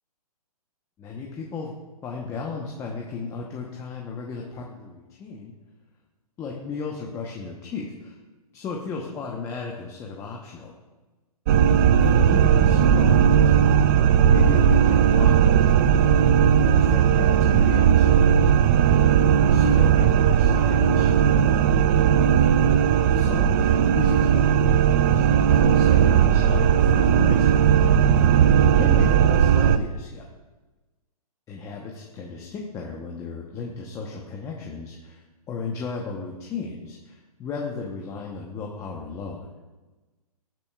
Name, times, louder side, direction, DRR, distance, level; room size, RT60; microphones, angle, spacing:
voice 1, 1.0-1.7 2.0-5.5 6.4-8.2 8.5-10.7 11.9-13.5 13.8-13.9 14.3-19.2 19.5-21.3 23.0-30.3 31.5-39.5, left 4 dB, 15° left, -1 dB, 0.9 m, -35 dB
sound 1, 11.5-29.8, right 8 dB, 30° right, 0.4 m, -17 dB
17.0 x 9.1 x 2.4 m, 1.2 s
hypercardioid pair, 140°, 20 cm